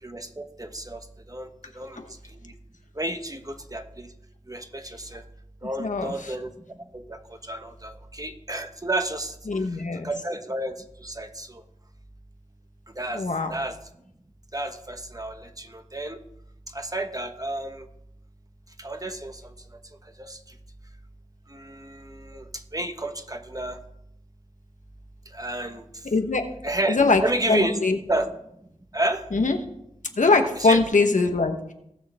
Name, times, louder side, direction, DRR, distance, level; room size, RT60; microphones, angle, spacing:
voice 1, 0.0-2.5 2.9-4.1 4.5-5.2 5.6-11.6 12.9-13.2 13.5-13.8 14.5-16.2 16.7-17.9 18.8-19.5 20.0-20.4 21.5-23.8 25.3-26.1 26.6-27.8 28.1-28.3 28.9-29.3 30.6-30.8, right 1 dB, 30° right, 7 dB, 1.1 m, -31 dB
voice 2, 5.8-6.1 9.5-10.1 13.1-13.5 26.1-26.4 26.9-27.2 27.5-28.0 29.3-29.6 30.2-31.7, left 3 dB, 90° left, 5 dB, 1.1 m, -21 dB
17.5 x 6.4 x 3.5 m, 0.77 s
wide cardioid pair, 45°, 13 cm